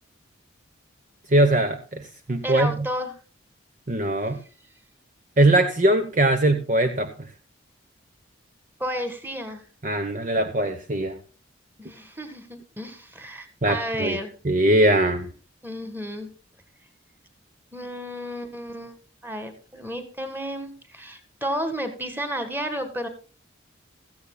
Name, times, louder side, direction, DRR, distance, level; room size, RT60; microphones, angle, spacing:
voice 1, 1.3-2.7 3.9-4.4 5.4-7.1 9.8-11.2 13.6-14.2 14.4-15.3, right 1 dB, 40° right, 8 dB, 0.9 m, -21 dB
voice 2, 2.4-3.1 8.8-9.6 11.8-14.3 15.6-16.3 17.7-19.0 19.2-23.1, equal, 10° right, 9 dB, 1.8 m, -32 dB
17.0 x 13.5 x 2.3 m, 0.36 s
head